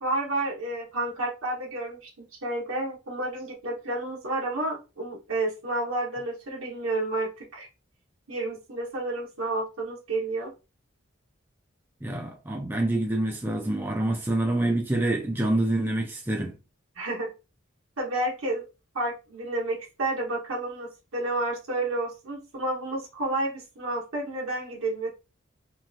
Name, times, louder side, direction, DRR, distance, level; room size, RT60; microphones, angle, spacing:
voice 1, 0.0-7.7 8.3-10.5 16.9-17.3 18.0-18.6 18.9-25.1, right 2 dB, 90° right, 1.2 m, -30 dB
voice 2, 12.0-16.6, right 1 dB, 10° right, 0.4 m, -26 dB
3.0 x 2.7 x 2.4 m
head